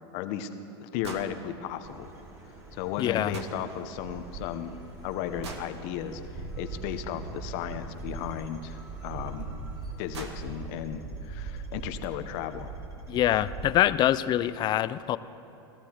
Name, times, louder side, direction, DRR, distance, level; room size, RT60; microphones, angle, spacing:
voice 1, 0.1-0.5 0.8-2.1 2.7-4.7 5.0-9.5 10.0-12.7, left 9 dB, 55° left, 9 dB, 0.9 m, -35 dB
sound 1, 1.0-1.3 3.3-3.6 5.4-5.7 8.0-8.1 9.4-9.5 9.8-9.9 10.1-10.4, right 4 dB, 85° right, 1.5 m, -40 dB
sound 2, 1.8-13.8, right 3 dB, 25° right, 2.4 m, -41 dB
voice 2, 3.0-3.3 13.1-15.2, left 12 dB, 30° left, 15 dB, 0.4 m, -25 dB
15.0 x 14.0 x 4.5 m, 2.8 s
hypercardioid pair, 115°, 14 cm